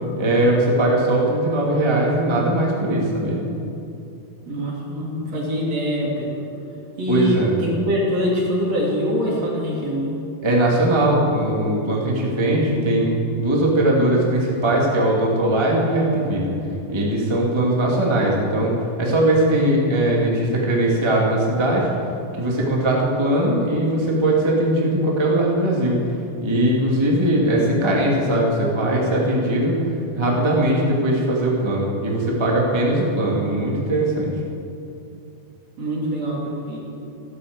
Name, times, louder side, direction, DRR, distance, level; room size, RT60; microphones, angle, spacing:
voice 1, 0.2-3.4 7.1-7.5 10.4-16.5 16.9-18.7 19.0-21.9 22.3-26.0 26.4-29.8 30.2-34.3, right 1 dB, 10° right, -4 dB, 1.8 m, -20 dB
voice 2, 4.5-6.4 7.0-10.2 35.8-36.8, equal, 45° right, -3 dB, 3.7 m, -24 dB
14.5 x 12.5 x 7.9 m, 2.7 s
omnidirectional pair, 4.3 m